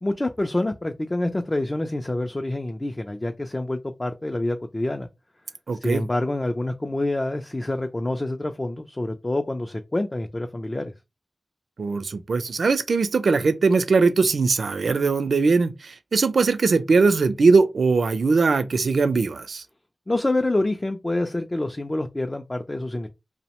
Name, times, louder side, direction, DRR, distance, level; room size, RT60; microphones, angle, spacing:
voice 1, 0.0-5.1 5.8-10.9 20.1-23.1, left 2 dB, 25° left, 0.3 m, -27 dB
voice 2, 5.7-6.1 11.8-19.6, right 4 dB, 85° right, 0.3 m, -20 dB
2.7 x 2.0 x 2.9 m
wide cardioid pair, 80°, 0 cm